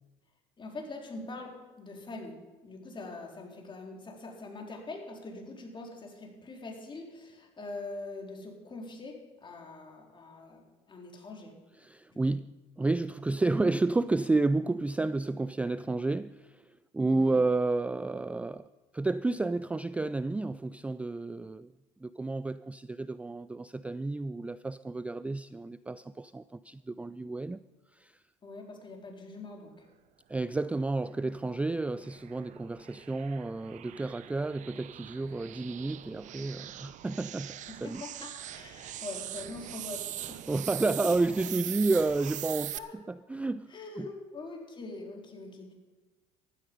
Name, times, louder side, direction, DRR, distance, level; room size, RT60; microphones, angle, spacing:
voice 1, 0.6-11.5 12.1-12.2 17.1-17.4 28.4-29.9 37.7-40.4 42.7-43.0 43.7-45.7, left 3 dB, 30° left, 4.0 m, -43 dB
voice 2, 11.8-21.7 22.0-27.6 27.9-28.2 30.3-38.0 40.5-44.1, right 3 dB, 10° right, 0.3 m, -31 dB
sound 1, 31.2-42.8, right 12 dB, 50° right, 0.8 m, -42 dB
14.5 x 12.5 x 5.4 m
hypercardioid pair, 70°, 16 cm